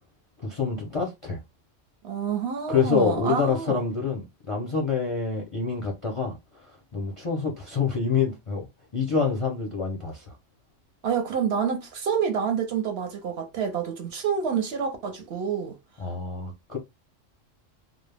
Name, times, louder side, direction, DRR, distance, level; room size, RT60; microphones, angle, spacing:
voice 1, 0.4-1.4 2.7-6.4 6.9-8.7 8.9-10.3 16.0-16.8, left 5 dB, 45° left, 0.4 m, -26 dB
voice 2, 2.0-3.8 11.0-15.8, right 7 dB, 60° right, 0.8 m, -28 dB
2.2 x 2.0 x 3.2 m
omnidirectional pair, 1.3 m